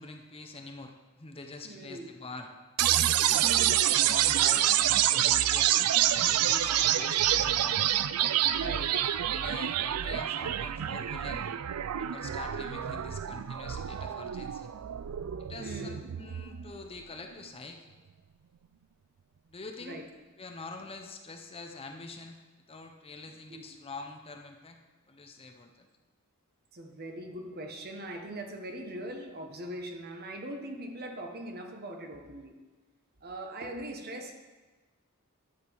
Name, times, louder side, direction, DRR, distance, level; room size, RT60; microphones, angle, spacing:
voice 1, 0.0-2.5 3.2-3.5 3.8-7.8 8.6-11.5 12.0-14.7 15.4-17.9 19.5-20.0 20.4-22.4 22.7-24.8 25.1-25.9, left 3 dB, 25° left, 4 dB, 0.8 m, -45 dB
voice 2, 1.6-2.1 3.4-3.7 4.6-4.7 6.5-6.8 8.2-8.3 8.6-8.9 15.6-16.0 19.8-20.1 23.5-23.6 26.7-32.5 33.2-34.3, right 1 dB, 45° right, 3 dB, 1.2 m, -41 dB
sound 1, 2.8-16.8, right 12 dB, 90° right, 0.4 m, -27 dB
11.5 x 7.4 x 4.7 m, 1.3 s
head